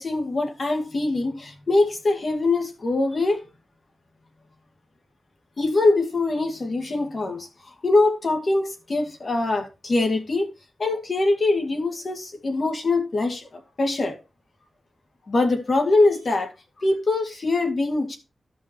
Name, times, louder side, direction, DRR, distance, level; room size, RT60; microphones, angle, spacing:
voice 1, 0.0-3.4 5.6-7.5 7.8-10.5 10.8-14.2 15.3-16.5 16.8-18.2, left 2 dB, 55° left, 2.0 m, -23 dB
14.5 x 5.4 x 3.0 m
wide cardioid pair, 75°, 0 cm